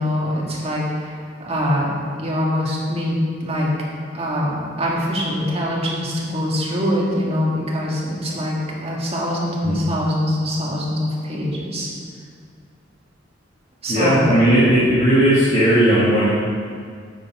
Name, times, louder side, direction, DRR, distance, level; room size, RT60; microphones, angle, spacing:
voice 1, 0.0-1.9 2.2-3.7 4.1-11.9 13.8-14.2, equal, 35° right, -4 dB, 1.9 m, -23 dB
voice 2, 13.9-16.3, right 1 dB, 35° left, -10 dB, 1.7 m, -16 dB
9.3 x 6.8 x 4.9 m, 2.1 s
head